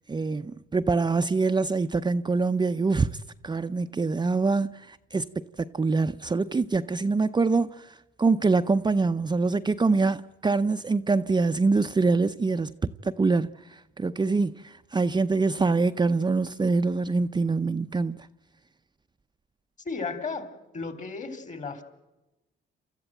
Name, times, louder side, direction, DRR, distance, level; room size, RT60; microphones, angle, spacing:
voice 1, 0.1-12.7 13.0-18.3, right 3 dB, 20° right, 0.7 m, -25 dB
voice 2, 19.8-20.5 20.7-21.8, left 4 dB, 40° left, 3.5 m, -34 dB
28.5 x 14.0 x 9.0 m
cardioid pair, 90°, 20 cm